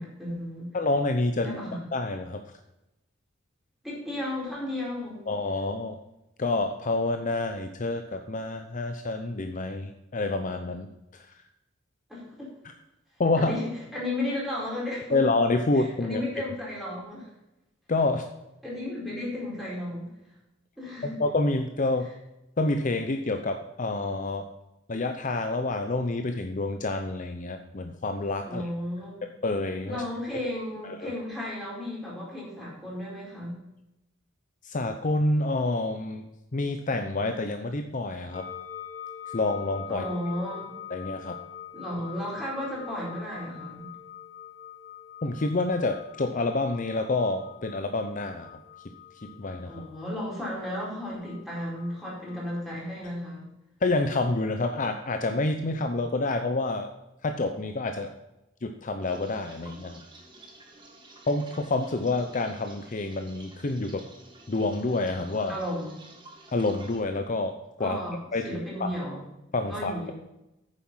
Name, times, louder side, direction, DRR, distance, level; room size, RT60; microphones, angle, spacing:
voice 1, 0.0-0.7 1.4-1.8 3.8-5.2 12.1-12.5 13.4-15.2 15.7-17.3 18.6-20.1 20.8-21.2 28.4-29.2 29.9-33.6 39.9-40.8 41.7-43.9 49.7-53.4 65.5-65.9 67.8-69.2 69.7-70.1, left 1 dB, ahead, -6 dB, 4.6 m, -34 dB
voice 2, 0.7-1.6 1.9-2.4 5.3-6.0 6.4-11.3 13.2-13.6 15.1-16.2 17.9-18.2 21.0-22.1 22.6-24.5 24.9-28.6 29.4-30.0 30.8-31.1 34.6-36.2 36.5-38.5 39.3-40.0 40.9-41.4 45.2-48.6 49.2-49.8 53.8-56.9 57.2-58.1 58.6-60.0 61.3-64.0 64.5-65.6 66.5-68.0 68.3-68.9 69.5-70.1, left 2 dB, 40° left, 6 dB, 0.7 m, -28 dB
sound 1, 38.3-52.6, left 10 dB, 25° left, 4.0 m, -45 dB
sound 2, 59.0-67.0, right 2 dB, 25° right, 1.9 m, -51 dB
9.3 x 7.4 x 5.6 m, 0.91 s
head